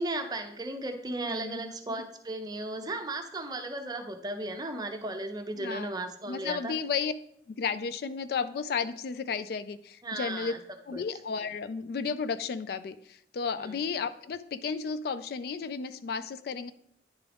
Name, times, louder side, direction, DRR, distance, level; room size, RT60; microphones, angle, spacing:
voice 1, 0.0-6.7 10.0-10.6 10.9-11.0 13.6-13.8, right 2 dB, 20° right, 6 dB, 0.6 m, -35 dB
voice 2, 1.2-1.7 5.6-5.9 6.3-7.1 7.5-10.5 10.9-16.7, left 5 dB, 55° left, 13 dB, 0.3 m, -33 dB
9.9 x 3.7 x 3.4 m, 0.72 s
head